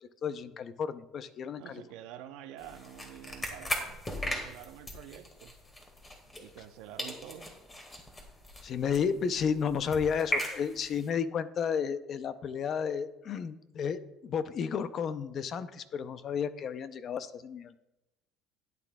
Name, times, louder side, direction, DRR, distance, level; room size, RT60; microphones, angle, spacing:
voice 1, 0.2-1.8 8.6-17.7, left 7 dB, 40° left, 13 dB, 0.5 m, -32 dB
voice 2, 1.5-5.5 6.4-7.5, right 11 dB, 75° right, 8 dB, 0.8 m, -48 dB
sound 1, 2.6-6.7 7.0-11.1, equal, 15° left, 1.8 m, -38 dB
13.0 x 9.3 x 2.3 m, 0.94 s
cardioid pair, 125°, 0 cm